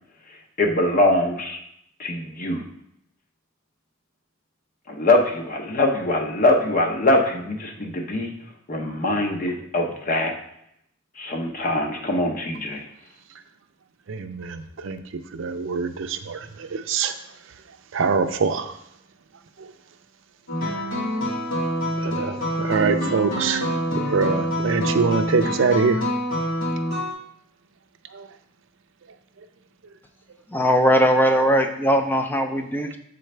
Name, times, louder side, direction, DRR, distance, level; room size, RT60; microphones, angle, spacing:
voice 1, 0.6-1.6 2.0-2.6 4.9-8.3 8.7-10.3 11.2-12.8, left 2 dB, 40° left, 3 dB, 0.8 m, -22 dB
voice 2, 14.1-15.0 15.3-17.1 17.5-17.6 17.9-18.8 19.6-19.7 22.0-23.7 24.0-26.0 28.1-28.3 29.4-29.5, right 5 dB, 65° right, 8 dB, 0.5 m, -24 dB
sound 1, 20.5-27.1, equal, 90° left, 1.9 m, -26 dB
voice 3, 30.5-33.0, equal, 10° left, 5 dB, 0.4 m, -19 dB
7.6 x 3.9 x 3.2 m, 0.73 s
head